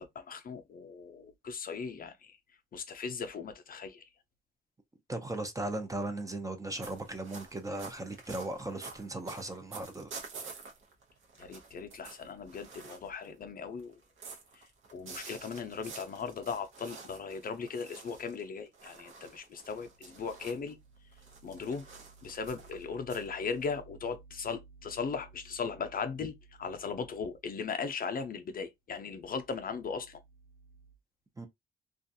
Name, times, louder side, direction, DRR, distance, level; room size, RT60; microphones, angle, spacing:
voice 1, 0.0-2.4 2.7-4.1 11.4-14.0 14.9-20.8 21.4-21.9 22.2-30.2, left 5 dB, 45° left, 0.5 m, -38 dB
voice 2, 5.1-10.1 31.4-31.5, right 2 dB, 15° right, 0.5 m, -37 dB
sound 1, 6.8-13.4 13.8-20.7 21.1-23.8, right 4 dB, 75° right, 0.8 m, -49 dB
2.4 x 2.3 x 2.6 m
cardioid pair, 105°, 21 cm